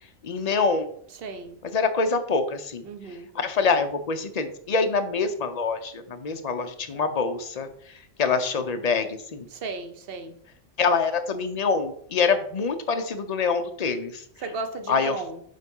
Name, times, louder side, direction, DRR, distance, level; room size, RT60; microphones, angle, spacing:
voice 1, 0.2-0.9 1.6-2.9 3.3-7.7 8.2-9.5 10.8-14.2 14.9-15.2, left 4 dB, 45° left, 8 dB, 0.5 m, -25 dB
voice 2, 1.1-1.6 2.8-3.3 9.5-10.3 14.4-15.4, right 3 dB, 50° right, 8 dB, 1.0 m, -35 dB
7.5 x 3.4 x 5.4 m, 0.63 s
omnidirectional pair, 1.4 m